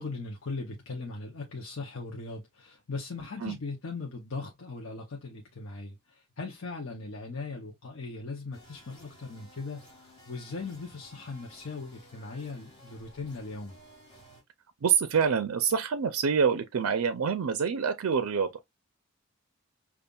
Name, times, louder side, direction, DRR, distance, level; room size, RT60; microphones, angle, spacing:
voice 1, 0.0-13.8, left 3 dB, 65° left, 0.7 m, -39 dB
sound 1, 8.5-14.4, equal, 20° left, 2.3 m, -55 dB
voice 2, 14.8-18.6, right 6 dB, 75° right, 0.4 m, -26 dB
5.2 x 2.4 x 2.3 m
head